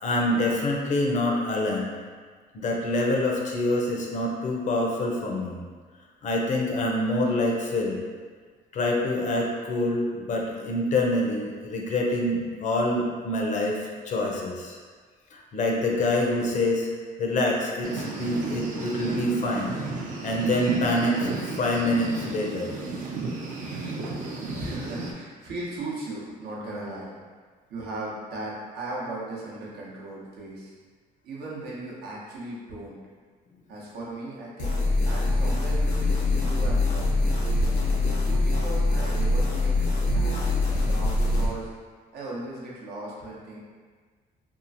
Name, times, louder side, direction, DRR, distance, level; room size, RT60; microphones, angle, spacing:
voice 1, 0.0-1.9 2.5-5.6 6.2-8.0 8.7-14.8 15.3-16.9 17.2-19.8 20.2-21.3 21.6-22.7, left 1 dB, 45° left, -1 dB, 0.5 m, -26 dB
sound 1, 17.8-25.1, right 3 dB, 50° right, 0.5 m, -33 dB
voice 2, 24.5-27.2 27.7-30.7 31.2-33.0 33.7-37.2 38.1-40.5 40.9-41.7 42.1-43.6, right 2 dB, 70° right, -5 dB, 0.8 m, -37 dB
sound 2, 34.6-41.5, left 2 dB, 85° left, 0.7 m, -23 dB
2.9 x 2.3 x 2.6 m, 1.5 s
cardioid pair, 110°, 17 cm